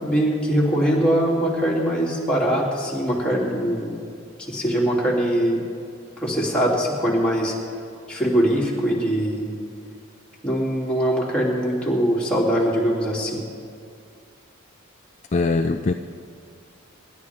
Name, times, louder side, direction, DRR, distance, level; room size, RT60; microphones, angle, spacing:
voice 1, 0.0-4.0 4.5-5.6 6.2-7.5 8.1-9.5 10.4-13.4, equal, 5° left, -6 dB, 3.0 m, -22 dB
voice 2, 15.3-15.9, left 3 dB, 35° left, 6 dB, 0.4 m, -21 dB
26.0 x 12.0 x 3.6 m, 2.3 s
head